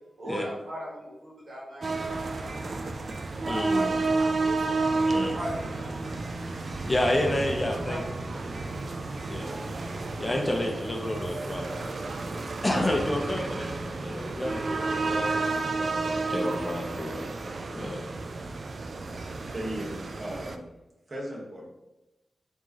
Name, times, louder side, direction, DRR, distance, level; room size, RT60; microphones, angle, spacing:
voice 1, 0.2-3.9 4.2-4.3 4.8-6.2 7.1-8.7, equal, 75° right, -5 dB, 1.4 m, -40 dB
sound 1, 1.8-20.6, right 3 dB, 55° right, 0.3 m, -31 dB
sound 2, 2.1-10.1, equal, 90° right, 1.5 m, -46 dB
voice 2, 3.5-3.9 5.1-5.3 6.8-8.0 9.3-9.7 10.2-11.9 12.6-15.5 15.7-17.3 17.6-18.0, left 1 dB, 25° left, 1 dB, 0.6 m, -30 dB
voice 3, 19.5-20.7 21.1-21.7, right 1 dB, 35° right, -3 dB, 1.3 m, -37 dB
4.4 x 3.0 x 2.9 m, 0.98 s
wide cardioid pair, 90°, 0 cm